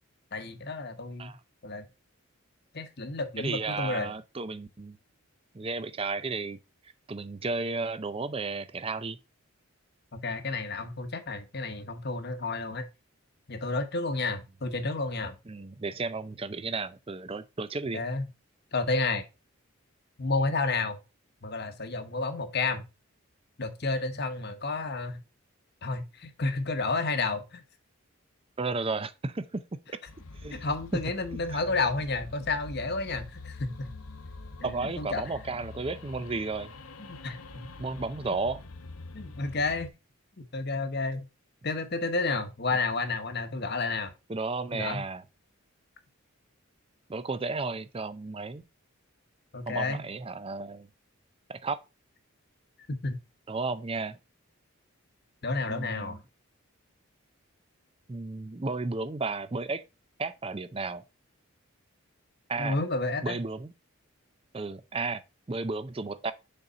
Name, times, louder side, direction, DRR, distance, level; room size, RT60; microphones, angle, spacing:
voice 1, 0.3-1.3 1.6-1.9 2.7-4.1 10.1-12.9 13.5-15.4 17.9-18.2 18.7-19.2 20.2-21.0 21.4-22.8 23.6-25.2 25.8-27.6 30.5-33.9 34.6-35.2 37.0-37.7 39.1-39.9 40.4-41.3 41.6-44.1 44.7-45.0 49.5-50.0 53.0-53.2 55.4-56.2 62.6-63.4, left 3 dB, 50° left, 1.0 m, -31 dB
voice 2, 3.4-5.0 5.5-6.6 7.1-9.2 15.5-18.0 28.6-30.0 30.3-30.7 31.3-31.6 34.6-36.7 37.8-38.6 44.3-45.2 47.1-48.6 49.7-50.9 51.5-51.8 53.5-54.2 55.7-56.2 58.1-59.8 60.2-61.0 62.5-62.8 63.2-63.7 64.5-65.2 65.5-66.3, right 3 dB, 25° right, 0.4 m, -33 dB
sound 1, 30.1-39.9, left 3 dB, 85° left, 0.9 m, -45 dB
6.7 x 4.1 x 5.0 m
head